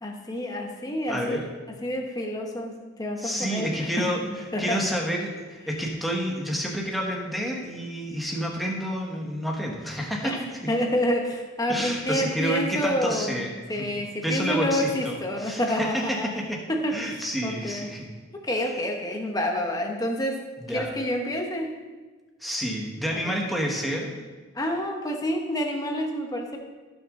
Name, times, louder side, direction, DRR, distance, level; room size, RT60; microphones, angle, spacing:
voice 1, 0.0-1.4 1.8-4.1 4.5-4.8 10.2-10.4 10.7-16.3 16.7-17.9 18.3-20.4 20.7-21.7 23.1-23.4 24.5-26.6, equal, 20° left, 2 dB, 1.2 m, -28 dB
voice 2, 1.1-1.4 3.2-4.2 4.6-10.4 11.7-13.5 13.8-13.9 14.2-16.6 16.9-18.0 20.6-20.9 22.4-24.1, equal, ahead, -1 dB, 1.4 m, -29 dB
16.0 x 6.2 x 3.8 m, 1.3 s
head